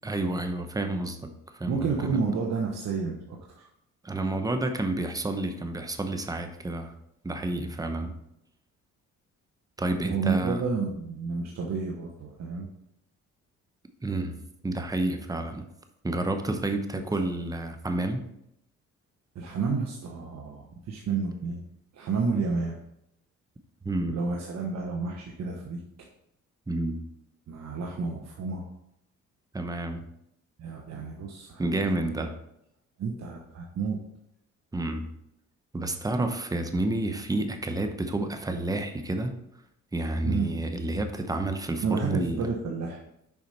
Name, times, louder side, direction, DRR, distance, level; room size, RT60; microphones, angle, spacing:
voice 1, 0.0-1.2 1.6-2.2 4.0-6.9 7.2-8.1 9.8-10.6 14.0-14.4 14.6-15.7 16.0-18.2 23.8-24.2 26.7-27.0 29.5-30.0 31.6-32.3 34.7-35.1 35.7-39.4 39.9-42.4, right 2 dB, 10° right, 7 dB, 0.8 m, -29 dB
voice 2, 1.7-3.7 10.1-12.7 19.3-21.6 21.9-22.8 24.1-25.8 27.5-28.7 30.6-31.7 33.0-34.0 40.2-40.5 41.8-43.0, right 5 dB, 60° right, -1 dB, 1.1 m, -30 dB
7.1 x 4.9 x 4.3 m, 0.78 s
cardioid pair, 90°, 30 cm